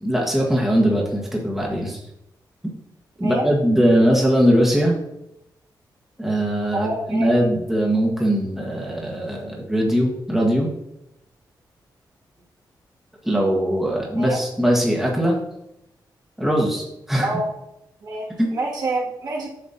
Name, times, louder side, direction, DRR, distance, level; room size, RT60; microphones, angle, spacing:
voice 1, 0.0-2.0 3.2-4.9 6.2-10.7 13.2-15.4 16.4-17.3 18.4-18.5, equal, 5° right, -2 dB, 1.5 m, -20 dB
voice 2, 3.2-3.5 6.7-7.3 14.2-14.4 17.2-17.5 18.0-19.5, right 2 dB, 65° right, -4 dB, 2.3 m, -27 dB
8.5 x 6.1 x 2.8 m, 0.84 s
wide cardioid pair, 110°, 8 cm